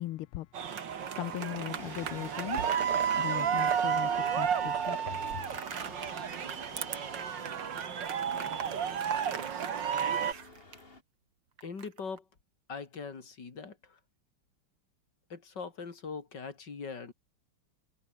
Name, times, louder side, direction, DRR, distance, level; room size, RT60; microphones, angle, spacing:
voice 1, 0.0-5.5, left 15 dB, 80° left, 1.6 m, -40 dB
sound 1, 0.5-10.3, right 8 dB, 55° right, 2.2 m, -32 dB
Box of Letter Stamps, 1.2-1.8 2.2-6.2 6.7-7.0 7.4-7.5 8.0-10.8 11.6-12.2, right 7 dB, 80° right, 2.9 m, -41 dB
sound 2, 1.8-11.0, left 2 dB, 25° left, 3.2 m, -51 dB
voice 2, 11.6-12.3 12.7-14.0 15.3-17.1, left 5 dB, 50° left, 3.5 m, -41 dB
omnidirectional pair, 2.4 m